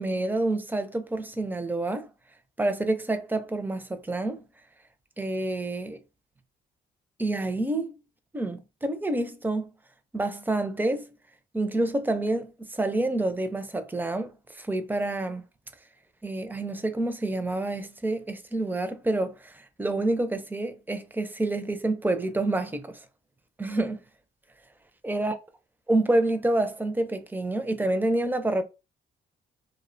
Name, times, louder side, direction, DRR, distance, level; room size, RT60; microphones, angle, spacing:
voice 1, 0.0-2.1 2.6-4.4 5.2-6.0 7.2-7.9 8.3-9.7 10.1-11.1 11.5-15.4 16.2-23.0 23.6-24.0 25.0-25.4 25.9-28.6, right 2 dB, 10° right, 0.4 m, -28 dB
2.5 x 2.1 x 2.5 m
cardioid pair, 90°, 20 cm